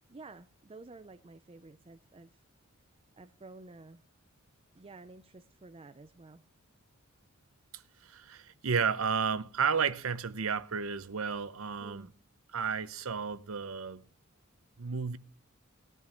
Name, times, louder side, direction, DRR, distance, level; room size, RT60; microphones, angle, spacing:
voice 1, 0.1-2.4 3.1-4.0 4.7-6.4 11.8-12.1, right 3 dB, 25° right, 0.5 m, -51 dB
voice 2, 7.7-12.1 12.5-14.0 14.8-15.2, right 6 dB, 75° right, 0.7 m, -32 dB
19.0 x 11.0 x 3.0 m
head